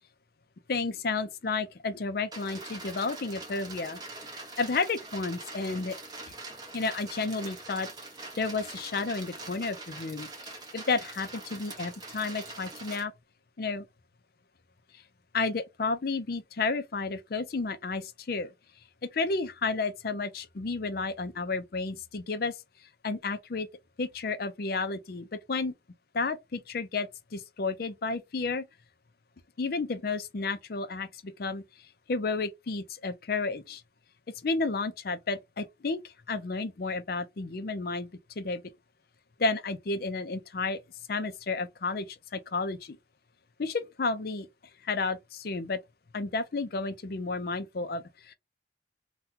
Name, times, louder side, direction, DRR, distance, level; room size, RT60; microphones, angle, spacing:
voice 1, 0.7-4.0 4.3-6.0 6.7-7.9 8.4-13.1 13.6-13.9 15.3-18.5 19.0-22.6 23.0-23.7 24.0-25.7 26.1-28.6 29.6-31.6 32.1-33.8 34.4-38.1 38.4-38.6 39.4-40.8 41.1-43.0 43.6-44.5 44.8-45.8 46.1-48.3, left 3 dB, 50° left, 0.5 m, -32 dB
Raining on roof, 2.3-13.0, right 3 dB, 20° right, 0.9 m, -43 dB
2.8 x 2.3 x 3.6 m
head